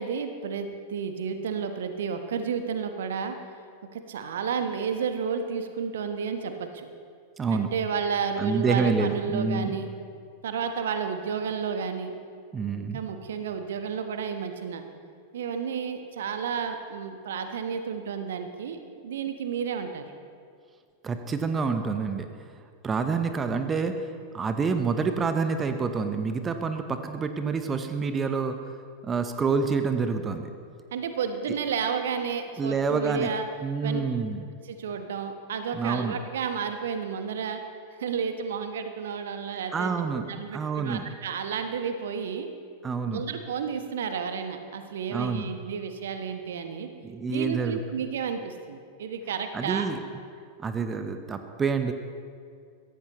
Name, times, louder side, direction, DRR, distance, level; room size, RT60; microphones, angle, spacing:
voice 1, 0.0-3.3 3.9-6.9 7.5-9.9 10.4-12.1 12.8-14.8 15.3-20.0 30.9-33.4 33.8-34.0 34.6-37.6 37.9-42.5 43.1-46.9 47.3-49.9, right 6 dB, 60° right, 7 dB, 1.2 m, -31 dB
voice 2, 7.4-7.7 8.4-9.8 12.5-13.0 21.0-22.3 22.8-23.9 24.3-28.6 29.0-30.5 32.6-33.3 33.6-34.5 35.7-36.2 39.7-40.2 40.5-41.1 42.8-43.2 45.1-45.5 47.0-47.8 49.5-50.0 50.6-51.9, right 5 dB, 20° right, 7 dB, 1.0 m, -27 dB
22.5 x 16.5 x 3.1 m, 2.2 s
figure-of-eight pair, 90°, 0 cm